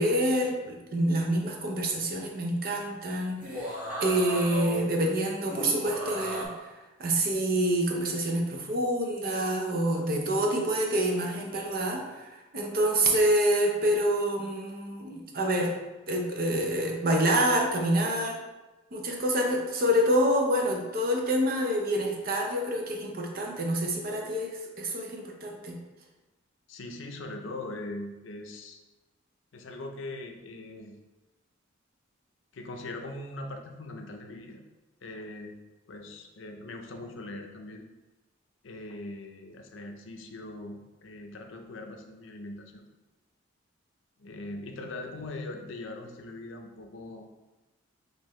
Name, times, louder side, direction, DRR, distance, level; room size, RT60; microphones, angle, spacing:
voice 1, 0.0-6.5 7.0-15.7 16.1-18.4 18.9-25.8, right 1 dB, 45° right, 1 dB, 0.7 m, -27 dB
sound 1, 3.3-4.8 5.5-6.4, left 1 dB, 10° right, 1.1 m, -35 dB
voice 2, 26.7-28.8 29.5-30.9 32.5-34.6 35.0-35.6 35.9-37.9 38.6-42.9 44.2-47.2, left 2 dB, 70° left, 4 dB, 0.5 m, -41 dB
5.6 x 2.6 x 3.1 m, 1.1 s
head